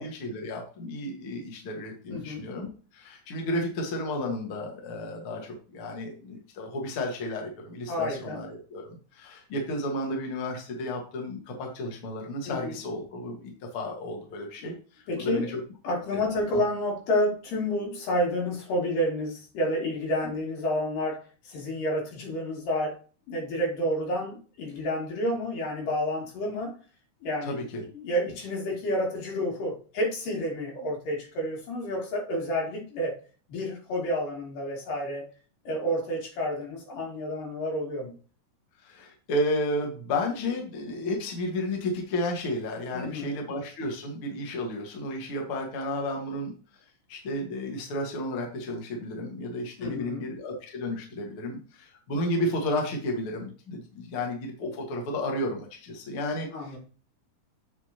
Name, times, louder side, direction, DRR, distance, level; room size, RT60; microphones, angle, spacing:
voice 1, 0.0-14.8 15.2-15.6 16.1-16.3 16.5-16.6 27.4-27.8 38.8-46.6 47.1-56.8, left 1 dB, 50° left, 1 dB, 2.1 m, -32 dB
voice 2, 2.1-2.4 7.9-8.4 12.5-12.8 15.1-15.5 15.8-22.9 23.3-26.7 27.2-27.6 27.9-33.2 33.5-35.2 35.7-38.1 42.9-43.4 49.8-50.3 56.5-56.8, equal, 75° left, -2 dB, 4.2 m, -30 dB
8.2 x 6.2 x 2.9 m, 0.38 s
omnidirectional pair, 3.8 m